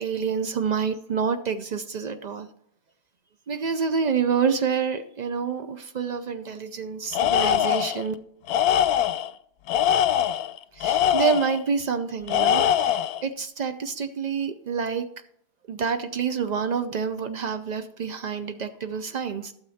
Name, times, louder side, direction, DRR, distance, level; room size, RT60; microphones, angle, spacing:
voice 1, 0.0-2.5 3.5-8.1 10.7-15.1 15.7-19.5, right 6 dB, 85° right, 8 dB, 0.3 m, -27 dB
Tools, 7.1-8.0 8.5-9.3 9.7-11.6 12.3-13.2, left 10 dB, 85° left, 1.1 m, -22 dB
12.5 x 7.4 x 4.2 m, 0.69 s
omnidirectional pair, 1.6 m